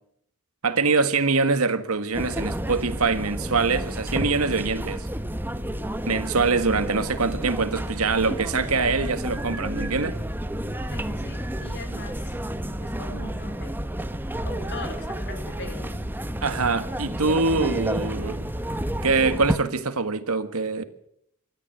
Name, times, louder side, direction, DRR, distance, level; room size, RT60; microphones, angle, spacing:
voice 1, 0.6-5.1 6.1-10.2 16.4-18.5 19.0-20.8, right 4 dB, 85° right, 1.7 m, -24 dB
sound 1, 2.1-19.6, right 1 dB, 10° right, 1.1 m, -30 dB
voice 2, 10.9-12.4 12.8-13.8 14.4-16.0, left 1 dB, 55° left, 4.2 m, -40 dB
27.0 x 13.5 x 8.1 m
head